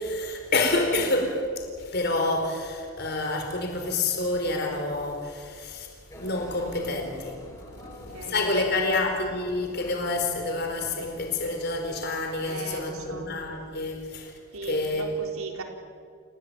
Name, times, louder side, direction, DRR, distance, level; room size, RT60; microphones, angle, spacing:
voice 1, 0.0-5.9 6.2-7.4 7.9-14.3 14.6-15.1, left 2 dB, 45° left, 3 dB, 4.6 m, -28 dB
sound 1, 6.1-13.9, left 1 dB, 15° left, 7.3 m, -47 dB
voice 2, 7.8-9.2 9.5-9.7 12.4-13.4 14.5-15.6, right 2 dB, 85° right, 3 dB, 3.9 m, -39 dB
28.5 x 18.0 x 9.3 m, 2.1 s
head